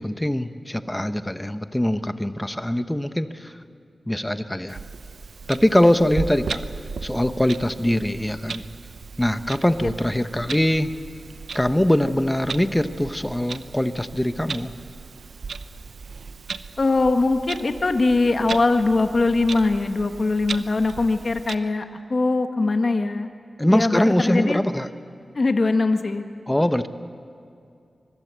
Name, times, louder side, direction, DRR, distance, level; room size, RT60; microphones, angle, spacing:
voice 1, 0.0-3.5 4.1-4.8 5.5-6.6 7.0-8.6 9.2-10.9 11.5-14.7 23.6-24.9 26.5-26.9, left 1 dB, 10° left, 10 dB, 1.0 m, -22 dB
Clock, 4.7-21.6, right 5 dB, 90° right, 0.7 m, -36 dB
voice 2, 16.8-23.3 23.7-24.6 25.3-26.2, left 3 dB, 45° left, 7 dB, 1.3 m, -21 dB
25.0 x 21.5 x 8.2 m, 2.5 s
wide cardioid pair, 95°, 0 cm